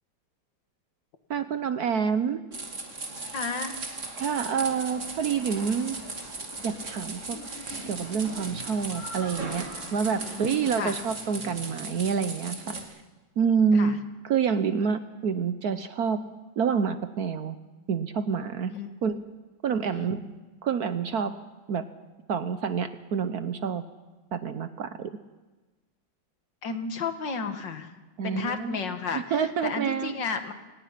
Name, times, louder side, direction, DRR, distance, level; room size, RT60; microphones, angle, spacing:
voice 1, 1.3-2.4 4.2-6.0 6.6-7.4 7.9-9.7 9.9-12.8 13.4-13.9 14.2-16.2 16.6-17.6 17.9-18.7 19.0-19.2 19.6-20.2 20.6-21.3 21.7-21.9 22.3-23.8 24.3-25.1 28.2-28.8 29.1-30.2, right 6 dB, 60° right, 11 dB, 1.2 m, -27 dB
sound 1, 2.5-12.8, right 3 dB, 40° right, 2.7 m, -38 dB
voice 2, 3.3-3.8 10.1-11.0 13.7-14.0 18.7-18.9 19.9-20.1 26.6-27.9 28.2-29.2 29.6-30.5, left 5 dB, 65° left, 7 dB, 2.3 m, -32 dB
sound 2, 4.2-11.2, left 1 dB, 15° left, 4.2 m, -46 dB
29.5 x 18.5 x 5.9 m, 1.2 s
omnidirectional pair, 2.1 m